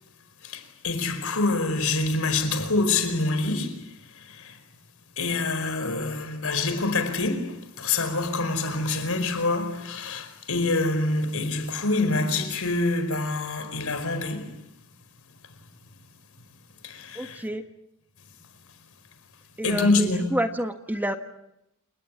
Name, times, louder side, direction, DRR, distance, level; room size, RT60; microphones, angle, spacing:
voice 1, 0.4-3.8 4.3-4.6 5.2-14.5 16.8-17.4 19.6-20.3, left 3 dB, 75° left, 4.9 m, -26 dB
voice 2, 17.1-17.6 19.6-21.2, right 1 dB, 10° right, 1.5 m, -29 dB
29.0 x 19.5 x 9.7 m
head